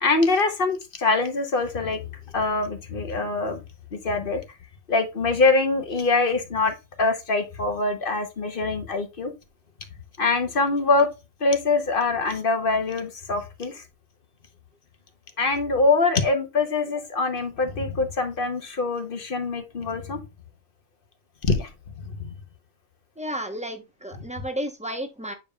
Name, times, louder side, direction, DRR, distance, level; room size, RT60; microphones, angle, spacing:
voice 1, 0.0-2.0 2.3-3.6 3.9-4.4 4.9-9.3 10.2-11.1 11.4-13.8 15.4-20.2 21.4-21.7 22.0-22.3, left 3 dB, 45° left, 1.1 m, -24 dB
voice 2, 23.2-25.3, equal, 5° right, 0.7 m, -32 dB
8.2 x 5.2 x 2.3 m
omnidirectional pair, 1.4 m